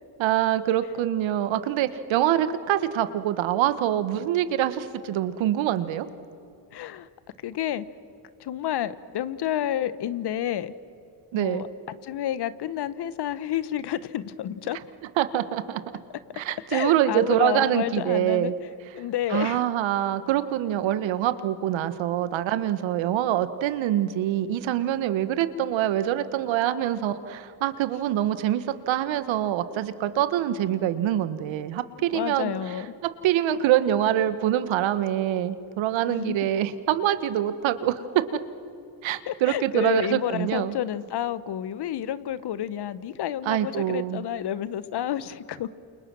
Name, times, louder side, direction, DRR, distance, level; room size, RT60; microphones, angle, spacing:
voice 1, 0.2-6.1 11.3-11.7 15.2-15.8 16.4-18.5 19.3-32.5 33.0-38.0 39.0-40.7 43.4-44.3, right 11 dB, 65° right, 12 dB, 1.6 m, -25 dB
voice 2, 6.7-7.1 7.4-7.8 8.4-10.7 11.3-11.7 12.0-14.8 16.7-18.5 18.9-19.6 32.0-32.9 36.1-36.5 39.2-45.7, left 11 dB, 50° left, 16 dB, 1.2 m, -30 dB
29.0 x 28.5 x 6.3 m, 2.5 s
hypercardioid pair, 65°, 49 cm